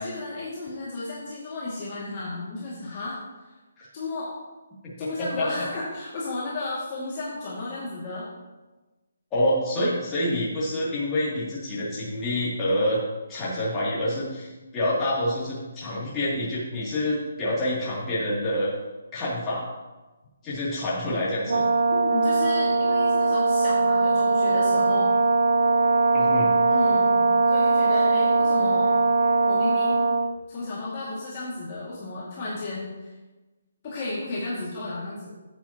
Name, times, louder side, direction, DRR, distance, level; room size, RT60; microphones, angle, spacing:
voice 1, 0.0-3.2 3.4-3.5 3.9-4.4 5.0-8.3 21.9-25.1 26.7-28.9 29.5-30.1 30.5-33.1 33.8-35.3, left 2 dB, 30° left, -8 dB, 2.2 m, -33 dB
voice 2, 5.0-5.5 9.3-13.0 13.3-18.7 19.1-19.6 20.4-21.7 26.1-26.5, left 1 dB, 15° left, -9 dB, 2.7 m, -27 dB
Brass instrument, 21.5-30.4, right 4 dB, 65° right, 0.6 m, -21 dB
13.5 x 8.2 x 3.0 m, 1.2 s
hypercardioid pair, 170°, 0 cm